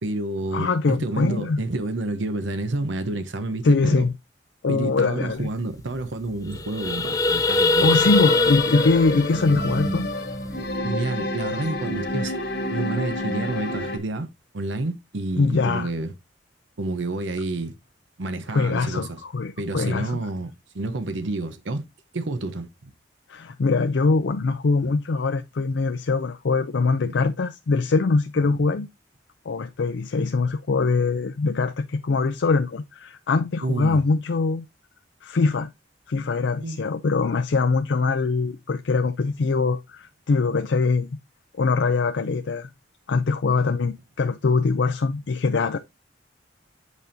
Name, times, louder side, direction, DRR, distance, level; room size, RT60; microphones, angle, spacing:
voice 1, 0.0-4.1 4.7-8.0 9.1-9.3 9.6-9.9 10.8-12.3 12.7-14.3 14.5-16.1 16.8-17.7 18.2-19.2 19.6-21.8 22.1-22.7 27.0-27.1 28.4-28.6 33.6-34.0 36.5-36.8, right 2 dB, 85° right, 0.8 m, -29 dB
voice 2, 0.5-1.6 3.6-4.1 4.6-5.5 7.8-10.1 15.4-15.9 18.5-20.2 23.3-28.9 29.5-34.7 35.2-35.7 36.1-41.1 41.6-42.7 43.1-45.8, left 4 dB, 75° left, 0.5 m, -23 dB
sound 1, 5.4-5.5 5.8-6.0 6.4-10.7, left 2 dB, 20° left, 0.5 m, -23 dB
sound 2, 7.9-14.0, left 1 dB, 60° left, 1.5 m, -29 dB
8.2 x 5.2 x 2.7 m
head